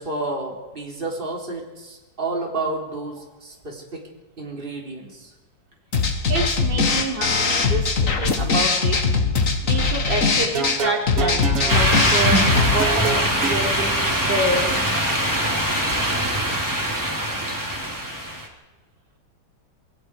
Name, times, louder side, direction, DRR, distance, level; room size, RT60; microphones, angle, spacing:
voice 1, 0.0-4.1 4.4-5.3, right 2 dB, 30° right, 0 dB, 3.8 m, -30 dB
sound 1, 5.9-12.8, left 4 dB, 50° left, 2.1 m, -21 dB
voice 2, 6.3-9.0 9.6-12.4 12.7-15.1, right 2 dB, 90° right, 0 dB, 4.8 m, -27 dB
sound 2, 10.4-11.8 12.5-13.6, right 4 dB, 50° right, 2.7 m, -26 dB
sound 3, 11.7-18.5, equal, 10° right, 3.4 m, -22 dB
27.5 x 22.5 x 4.8 m, 1.2 s
omnidirectional pair, 1.8 m